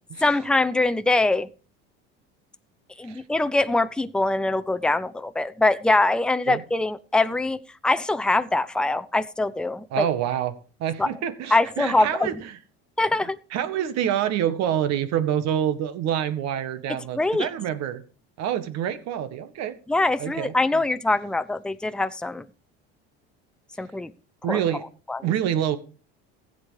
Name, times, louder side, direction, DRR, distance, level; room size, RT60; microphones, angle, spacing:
voice 1, 0.2-1.5 3.0-10.0 11.0-11.1 11.5-12.4 13.0-13.4 17.1-17.5 19.9-22.4 23.8-24.1 24.5-24.6 25.1-25.2, left 2 dB, 5° left, 0.7 m, -23 dB
voice 2, 9.9-12.5 13.2-18.0 18.4-19.8 20.2-20.8 24.4-24.8 25.2-25.8, right 10 dB, 60° right, 1.7 m, -27 dB
15.5 x 8.3 x 4.8 m
supercardioid pair, 90°, 29 cm